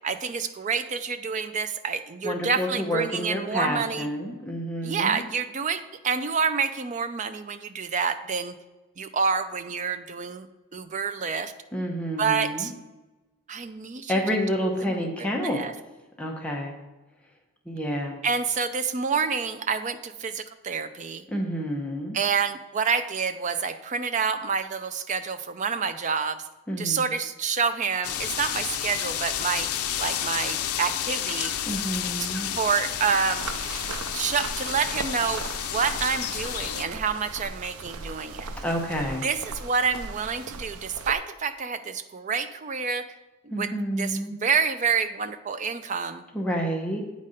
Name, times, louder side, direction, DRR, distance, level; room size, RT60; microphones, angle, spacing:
voice 1, 0.0-4.1 4.8-8.5 9.0-10.5 10.7-11.5 12.2-12.7 13.5-14.1 14.9-15.7 18.2-21.2 22.1-26.4 26.8-29.7 30.0-31.5 32.6-33.5 34.1-35.4 35.7-38.5 39.2-43.0 43.4-46.2, right 5 dB, 35° right, 10 dB, 0.4 m, -28 dB
voice 2, 2.2-5.2 11.7-12.7 14.1-15.6 16.2-16.8 17.7-18.2 21.3-22.2 26.7-27.1 31.7-32.5 38.6-39.3 43.5-44.4 46.3-47.0, equal, 5° left, -1 dB, 0.8 m, -29 dB
sound 1, 28.0-36.8, left 10 dB, 90° left, 0.5 m, -31 dB
sound 2, 33.4-41.2, right 3 dB, 80° right, 0.6 m, -38 dB
8.4 x 4.1 x 5.0 m, 1.1 s
head